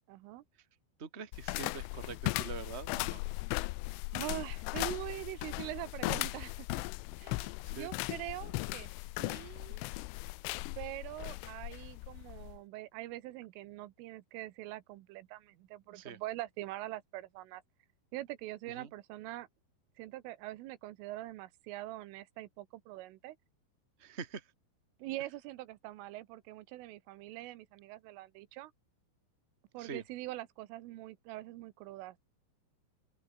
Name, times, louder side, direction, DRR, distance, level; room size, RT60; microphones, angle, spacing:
voice 1, 0.1-0.4 4.1-6.8 7.2-8.9 9.2-9.9 10.8-17.6 18.1-19.5 20.0-23.4 25.0-28.7 29.7-32.2, right 16 dB, 85° right, 3.7 m, -43 dB
voice 2, 1.0-3.2 7.6-7.9 15.9-16.2 18.7-18.9 24.0-24.5 29.8-30.0, right 5 dB, 20° right, 1.8 m, -44 dB
sound 1, 1.3-12.6, left 24 dB, 85° left, 3.1 m, -38 dB
open air
omnidirectional pair, 5.6 m